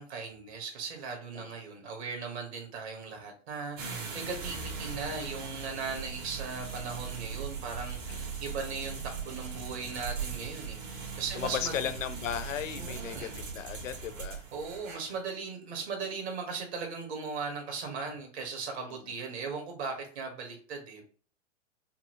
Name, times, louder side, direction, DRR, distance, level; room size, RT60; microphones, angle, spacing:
voice 1, 0.0-11.9 12.8-13.4 14.5-21.1, right 5 dB, 60° right, 2 dB, 1.7 m, -38 dB
sound 1, 3.8-15.2, right 5 dB, 75° right, 2.0 m, -39 dB
voice 2, 8.1-8.4 11.3-14.4 18.8-19.1, left 10 dB, 80° left, 11 dB, 0.7 m, -36 dB
5.7 x 2.0 x 3.1 m, 0.41 s
hypercardioid pair, 115°, 37 cm